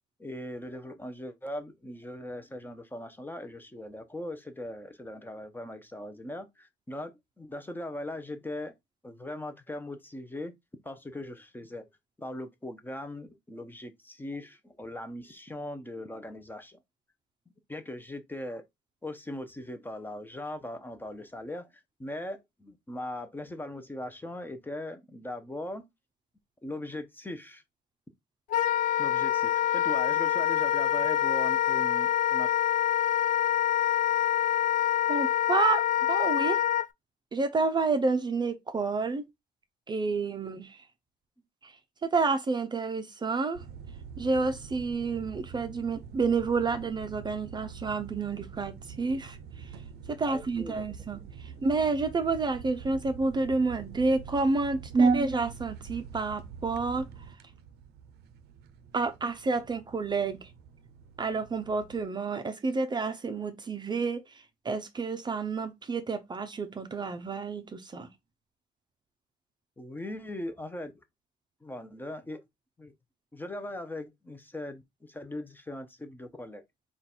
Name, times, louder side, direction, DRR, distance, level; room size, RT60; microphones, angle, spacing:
voice 1, 0.2-7.1 7.4-8.7 9.0-10.5 10.8-11.9 12.2-16.8 17.7-18.6 19.0-21.7 22.0-25.8 26.6-27.6 29.0-32.5 50.2-50.8 51.6-51.7 69.8-71.0 71.6-72.4 72.8-72.9 73.3-76.6, left 1 dB, 10° left, 0.7 m, -39 dB
Wind instrument woodwind instrument, 28.5-36.9, left 11 dB, 50° left, 0.4 m, -26 dB
voice 2, 35.1-35.8 36.1-36.7 37.3-39.3 39.9-40.8 41.6-41.7 42.0-43.6 44.2-49.7 50.1-57.1 58.9-60.5 61.2-68.1, right 4 dB, 25° right, 0.5 m, -29 dB
sound 1, 43.5-62.0, right 6 dB, 75° right, 0.5 m, -46 dB
3.9 x 2.4 x 4.2 m
cardioid pair, 110°, 17 cm